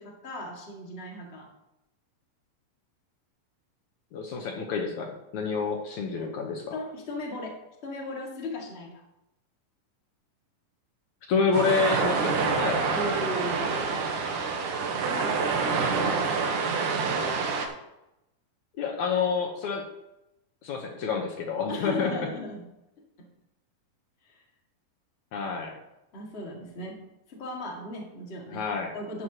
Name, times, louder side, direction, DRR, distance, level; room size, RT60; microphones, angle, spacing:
voice 1, 0.0-1.5 6.0-6.3 6.7-7.6 7.8-9.0 12.9-14.0 15.1-16.6 21.7-22.6 24.2-24.4 26.1-27.0 27.3-28.6 28.9-29.2, left 1 dB, 25° left, -2 dB, 1.8 m, -37 dB
voice 2, 4.1-6.8 11.3-12.8 18.8-19.8 20.6-22.3 25.3-25.8 28.5-28.9, left 5 dB, 65° left, 1 dB, 2.3 m, -28 dB
sound 1, 11.5-17.7, right 4 dB, 75° right, 2.7 m, -27 dB
12.5 x 9.4 x 3.0 m, 0.90 s
omnidirectional pair, 3.9 m